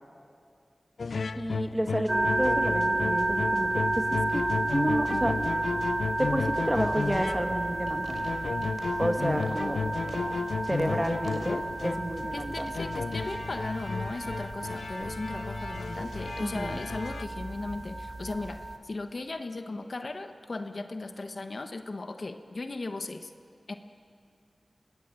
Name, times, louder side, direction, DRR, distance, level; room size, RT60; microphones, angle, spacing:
sound 1, 1.0-17.2, left 4 dB, 85° left, 0.5 m, -34 dB
voice 1, 1.4-5.4 6.2-8.3 9.0-9.8 10.6-12.7 16.4-16.8, right 1 dB, 10° right, 5 dB, 2.3 m, -30 dB
sound 2, 2.1-18.8, right 2 dB, 30° right, 1.7 m, -32 dB
sound 3, 7.3-7.6 8.0-8.4 8.8-9.0 9.4-9.7 10.1-10.3 10.7-10.9 11.3-11.6, right 2 dB, 85° right, 4.7 m, -44 dB
voice 2, 9.0-9.4 12.3-23.3 23.7-23.8, left 3 dB, 60° left, 7 dB, 1.2 m, -37 dB
24.0 x 19.0 x 9.0 m, 2.4 s
cardioid pair, 45°, 0 cm